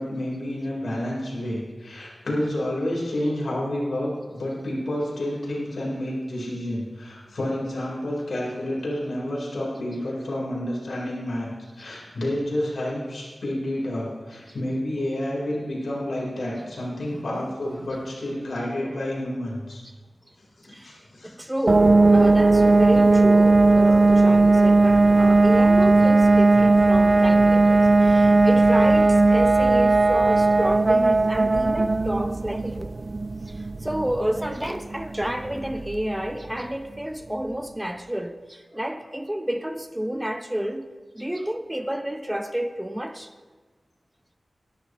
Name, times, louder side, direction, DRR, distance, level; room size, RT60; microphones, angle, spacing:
voice 1, 0.0-11.5 11.8-19.8 20.6-21.3, left 1 dB, 85° left, -5 dB, 4.2 m, -29 dB
voice 2, 17.1-17.4 20.7-20.9 21.2-33.0 33.5-40.9 41.1-43.3, equal, 10° right, 7 dB, 1.0 m, -30 dB
sound 1, 21.7-36.3, right 3 dB, 45° right, 0.3 m, -17 dB
20.0 x 11.5 x 3.2 m, 1.4 s
wide cardioid pair, 95°, 0 cm